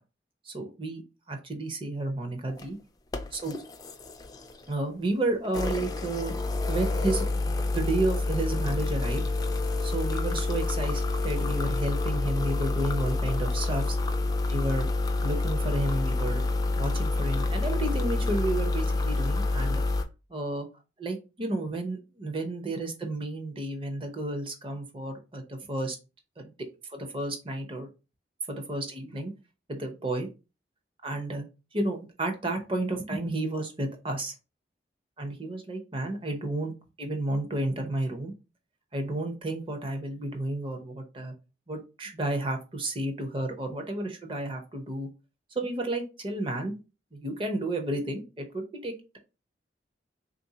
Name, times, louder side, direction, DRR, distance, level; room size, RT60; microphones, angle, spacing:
voice 1, 0.5-1.0 1.3-2.8 3.3-3.6 4.7-6.3 6.7-9.2 9.8-14.0 14.5-14.9 15.2-16.4 16.8-19.8 20.3-20.7 21.0-26.0 26.4-27.9 28.5-29.3 29.7-30.3 31.0-31.5 31.7-34.3 35.2-36.7 37.0-38.3 38.9-41.3 41.7-45.1 45.5-46.7 47.1-49.2, right 2 dB, 30° right, 4 dB, 0.7 m, -32 dB
sound 1, 2.5-2.6 3.1-4.7 5.4-20.0, left 2 dB, 20° left, 0.3 m, -28 dB
3.5 x 2.5 x 2.7 m, 0.29 s
head